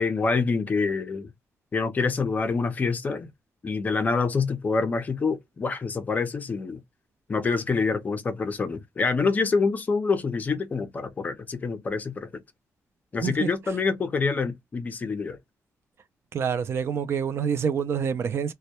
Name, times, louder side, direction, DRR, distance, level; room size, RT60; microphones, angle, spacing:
voice 1, 0.0-1.3 1.7-3.3 3.6-6.8 7.3-12.4 13.1-15.4, left 4 dB, 30° left, 0.5 m, -26 dB
voice 2, 16.3-18.5, right 7 dB, 45° right, 0.3 m, -27 dB
2.1 x 2.0 x 2.8 m
wide cardioid pair, 165°, 6 cm